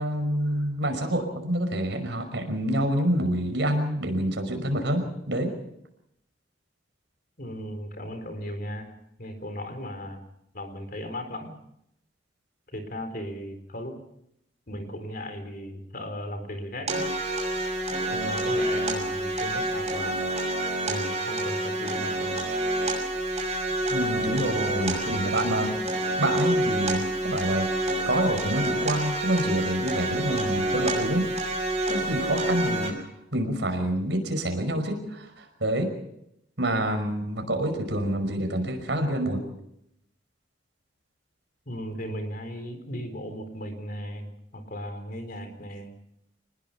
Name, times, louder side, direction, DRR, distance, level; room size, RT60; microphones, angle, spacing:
voice 1, 0.0-5.5 23.9-25.8 26.2-27.7 28.1-31.2 31.9-32.9 33.3-35.9 36.6-39.4, right 1 dB, 70° right, 6 dB, 5.5 m, -27 dB
voice 2, 7.4-8.9 9.2-10.2 10.5-11.5 12.7-14.0 14.7-17.0 18.1-20.3 20.9-22.4 41.7-46.0, equal, 50° left, 7 dB, 4.0 m, -36 dB
sound 1, 16.9-32.9, right 1 dB, 35° right, 6.2 m, -28 dB
26.5 x 20.5 x 5.9 m, 0.79 s
head